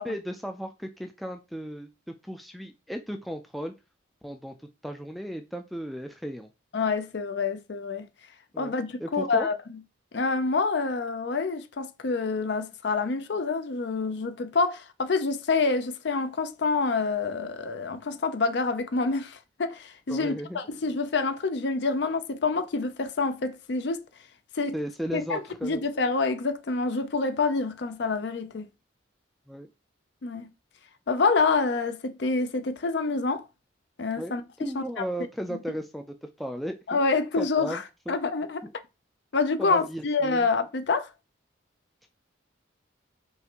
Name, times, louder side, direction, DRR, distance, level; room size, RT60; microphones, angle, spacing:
voice 1, 0.0-3.7 4.2-4.5 4.8-6.5 8.5-8.7 9.0-9.5 20.1-20.6 24.7-25.8 29.5-29.7 34.2-37.0 37.4-37.8 38.1-38.2 38.6-38.7 39.6-40.5 42.0-42.1, equal, ahead, 0.3 m, -35 dB
voice 2, 6.7-8.0 8.6-9.8 10.1-24.0 24.5-24.7 25.1-28.7 30.2-30.5 31.1-33.5 34.0-34.4 34.7-34.8 36.9-37.8 38.1-38.6 39.3-41.1, left 4 dB, 60° left, 0.5 m, -27 dB
5.5 x 2.5 x 2.9 m
head